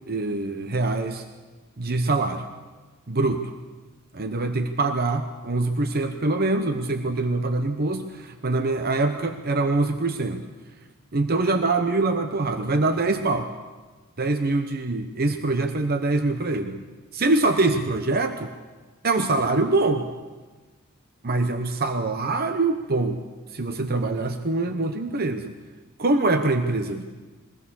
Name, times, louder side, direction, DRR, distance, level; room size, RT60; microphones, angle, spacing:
voice 1, 0.1-1.2 1.8-2.4 3.1-3.5 4.1-10.4 11.1-13.5 14.2-16.8 17.1-18.5 19.0-20.1 21.2-23.2 23.5-25.6 26.0-27.0, right 2 dB, 50° right, 7 dB, 0.9 m, -24 dB
22.5 x 17.0 x 7.0 m, 1.3 s
head